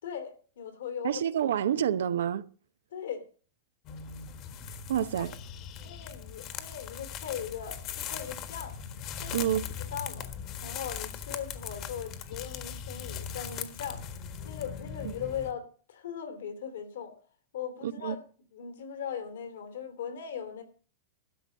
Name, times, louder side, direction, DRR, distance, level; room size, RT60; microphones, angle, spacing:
voice 1, 0.0-1.2 2.9-3.2 4.9-5.3 5.8-8.8 9.2-9.5 9.8-10.3 10.6-14.2 14.4-17.1 17.5-18.2 18.5-20.6, left 8 dB, 85° left, 3.1 m, -39 dB
voice 2, 1.0-2.5 4.9-5.3 9.3-9.7 15.0-15.1 17.8-18.2, right 10 dB, 85° right, 0.8 m, -28 dB
sound 1, 3.8-15.5, left 8 dB, 45° left, 1.4 m, -40 dB
12.5 x 5.4 x 8.9 m
hypercardioid pair, 125°, 0 cm